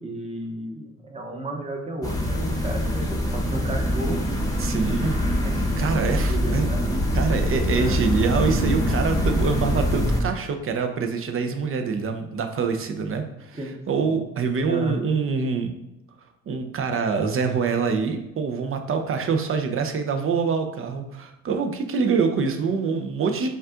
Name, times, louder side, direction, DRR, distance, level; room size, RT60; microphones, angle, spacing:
voice 1, 0.0-4.2 4.9-5.1 5.4-5.5 5.9-7.0 7.7-8.0 13.5-14.2 14.7-15.0, right 1 dB, 20° right, 2 dB, 0.9 m, -33 dB
sound 1, 2.0-10.2, equal, 10° left, 0.9 m, -24 dB
voice 2, 4.6-5.2 5.8-6.7 7.1-13.6 13.9-15.7 16.5-23.5, right 5 dB, 45° right, 6 dB, 0.6 m, -25 dB
5.4 x 2.4 x 3.6 m, 0.92 s
cardioid pair, 90°, 30 cm